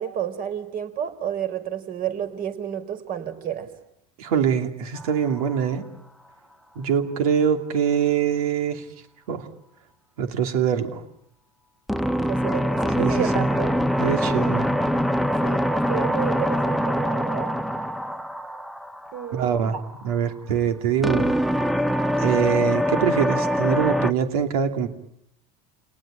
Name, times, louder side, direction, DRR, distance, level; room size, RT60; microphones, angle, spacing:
voice 1, 0.0-3.7 12.2-13.8 15.4-17.6 19.1-19.8, right 9 dB, 50° right, 9 dB, 4.2 m, -31 dB
voice 2, 4.2-5.8 6.7-8.8 9.3-9.5 10.2-11.0 13.0-13.5 14.0-14.7 19.3-19.7 20.0-21.3 22.2-24.9, right 8 dB, 85° right, 6 dB, 2.9 m, -23 dB
sound 1, 5.0-5.6 11.9-19.9 21.0-24.1, equal, ahead, 0.9 m, -24 dB
28.5 x 19.0 x 8.9 m, 0.78 s
supercardioid pair, 95°, 18 cm